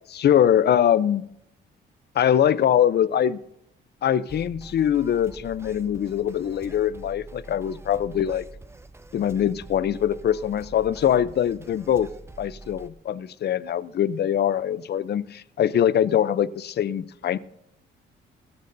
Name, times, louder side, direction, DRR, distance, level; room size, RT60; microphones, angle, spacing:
voice 1, 0.1-1.2 2.1-3.4 4.0-8.4 9.1-12.1 12.4-17.4, left 10 dB, 55° left, 16 dB, 0.7 m, -23 dB
sound 1, 4.3-12.9, right 2 dB, 15° right, 0.6 m, -45 dB
21.5 x 13.5 x 2.7 m, 0.79 s
cardioid pair, 90°, 20 cm